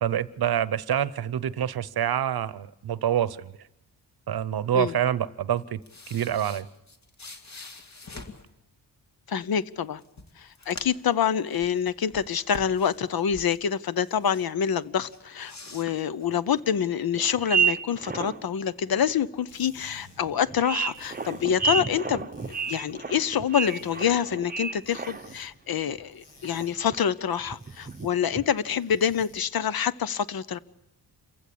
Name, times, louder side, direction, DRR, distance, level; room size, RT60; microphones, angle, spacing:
voice 1, 0.0-3.5 4.3-5.8 6.1-6.7, right 10 dB, 60° right, 18 dB, 0.9 m, -26 dB
sound 1, 5.6-8.5 9.6-9.7 10.0-11.1 11.5-13.6 14.0-14.7 15.0-16.6, left 3 dB, 40° left, 2.3 m, -45 dB
voice 2, 9.3-10.0 10.4-30.6, left 8 dB, 60° left, 16 dB, 0.9 m, -26 dB
sound 2, 15.3-15.4 15.7-15.8 16.7-16.8 17.2-18.5 19.0-19.1 19.8-19.9 20.3-25.5 25.7-26.0 26.4-27.0 27.4-28.5 28.9-29.2, right 6 dB, 20° right, 0.9 m, -31 dB
sound 3, 19.3-29.6, left 4 dB, 85° left, 6.3 m, -55 dB
27.5 x 15.5 x 8.6 m, 0.90 s
cardioid pair, 95°, 41 cm